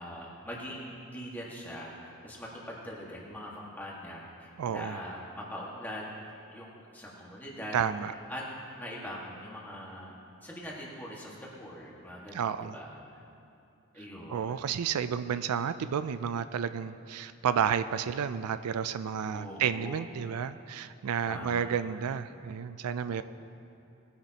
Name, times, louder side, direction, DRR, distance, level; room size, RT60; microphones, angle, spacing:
voice 1, 0.0-6.2 6.5-7.8 8.3-10.1 10.4-13.2 13.9-14.6 19.3-20.1 21.3-21.7 23.0-23.2, equal, 10° left, -5 dB, 1.7 m, -42 dB
voice 2, 4.6-5.0 7.7-8.1 12.3-12.7 14.3-23.2, right 7 dB, 90° right, 12 dB, 0.4 m, -31 dB
19.5 x 10.0 x 2.9 m, 2.7 s
head